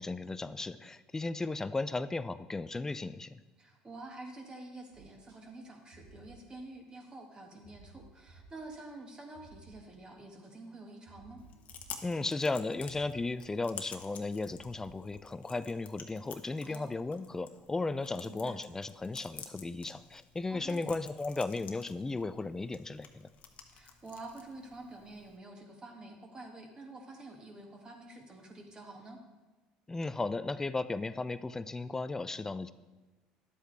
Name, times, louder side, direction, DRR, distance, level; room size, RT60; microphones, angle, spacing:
voice 1, 0.0-3.4 12.0-23.3 29.9-32.7, left 3 dB, 15° left, 14 dB, 0.4 m, -35 dB
voice 2, 3.6-11.4 16.6-16.9 18.2-18.6 20.5-20.8 23.7-29.2, right 2 dB, 25° right, 2 dB, 1.8 m, -48 dB
sound 1, 4.9-5.4 5.9-6.7 7.0-7.1 7.6-15.2, right 3 dB, 80° right, 2.2 m, -59 dB
Chewing mastication, 11.4-25.4, left 7 dB, 50° left, 1.1 m, -51 dB
11.0 x 8.0 x 3.4 m, 1.2 s
hypercardioid pair, 80°, 3 cm